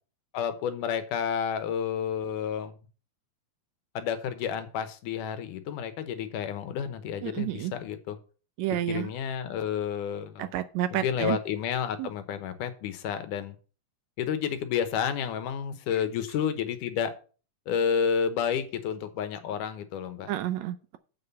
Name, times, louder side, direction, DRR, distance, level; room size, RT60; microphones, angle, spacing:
voice 1, 0.3-2.8 4.0-8.2 8.9-10.5 10.9-13.6 14.2-17.1 17.7-20.3, left 8 dB, 90° left, 10 dB, 2.6 m, -30 dB
voice 2, 7.2-7.7 8.6-9.1 10.4-11.4 12.0-12.1 20.3-21.0, right 13 dB, 75° right, 12 dB, 1.8 m, -30 dB
7.6 x 5.5 x 6.9 m, 0.37 s
omnidirectional pair, 3.5 m